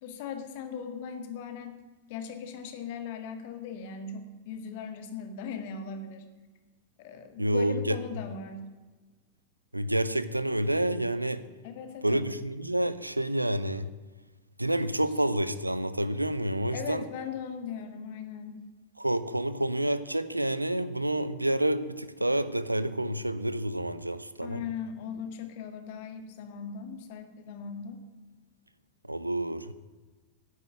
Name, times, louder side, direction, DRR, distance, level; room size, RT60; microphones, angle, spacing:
voice 1, 0.0-1.8 2.1-6.3 7.0-8.7 11.6-12.2 16.7-18.6 24.4-28.0, left 6 dB, 50° left, 8 dB, 1.8 m, -39 dB
voice 2, 7.4-8.0 9.7-11.5 12.0-13.9 14.6-17.1 19.0-24.6 29.0-29.7, right 1 dB, 85° right, 14 dB, 0.7 m, -28 dB
10.0 x 9.3 x 8.8 m, 1.3 s
figure-of-eight pair, 90°, 0 cm